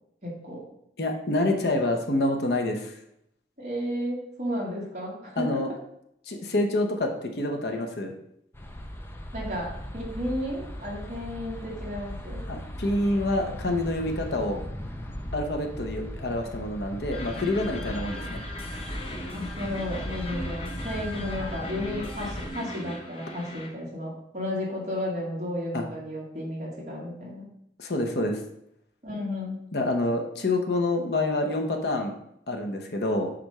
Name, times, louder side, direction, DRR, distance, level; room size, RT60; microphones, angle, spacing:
voice 1, 0.2-0.6 3.6-5.6 9.3-12.4 19.3-27.5 29.0-29.6, left 1 dB, 40° right, -4 dB, 1.9 m, -33 dB
voice 2, 1.0-2.9 5.4-5.7 6.3-8.1 12.5-14.6 15.3-18.4 25.7-25.9 27.8-28.4 29.7-32.1 32.5-33.3, left 2 dB, 70° left, 3 dB, 0.9 m, -27 dB
sound 1, 8.5-22.5, equal, 15° left, 0.4 m, -38 dB
sound 2, 17.1-23.7, left 1 dB, 30° left, 1.0 m, -39 dB
7.6 x 2.6 x 5.5 m, 0.75 s
head